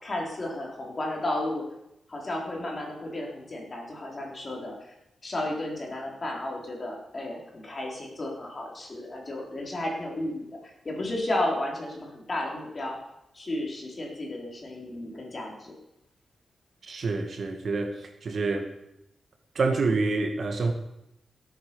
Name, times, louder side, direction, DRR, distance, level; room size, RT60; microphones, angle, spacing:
voice 1, 0.0-1.6 2.1-4.7 5.2-10.5 10.8-13.0 13.3-15.7, left 1 dB, 30° left, -1 dB, 4.0 m, -33 dB
voice 2, 16.8-18.7 19.6-20.7, right 3 dB, 55° right, 5 dB, 2.0 m, -27 dB
17.0 x 8.7 x 7.1 m, 0.85 s
wide cardioid pair, 135°, 0 cm